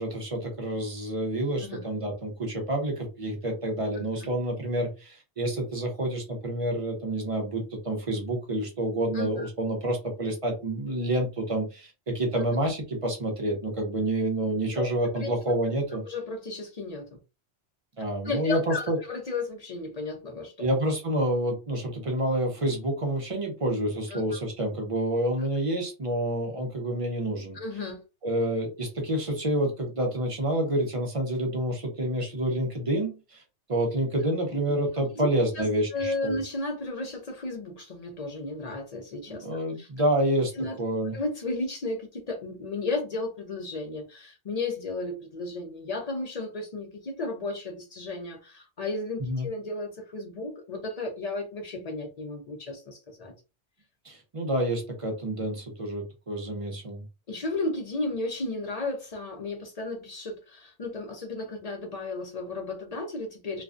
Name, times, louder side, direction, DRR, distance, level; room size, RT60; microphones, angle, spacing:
voice 1, 0.0-16.0 18.0-19.0 20.6-27.6 28.2-33.4 33.7-36.4 39.3-40.5 40.8-41.2 49.2-49.5 54.0-57.0, right 1 dB, 40° right, 0.6 m, -28 dB
voice 2, 9.1-9.5 14.7-14.8 15.2-15.3 16.1-17.1 18.2-20.7 24.1-24.2 27.5-28.0 35.1-35.3 35.5-35.7 35.9-39.5 39.8-39.9 40.6-40.8 41.1-53.3 57.3-63.6, left 2 dB, 45° left, 0.5 m, -34 dB
2.4 x 2.2 x 2.4 m
omnidirectional pair, 1.2 m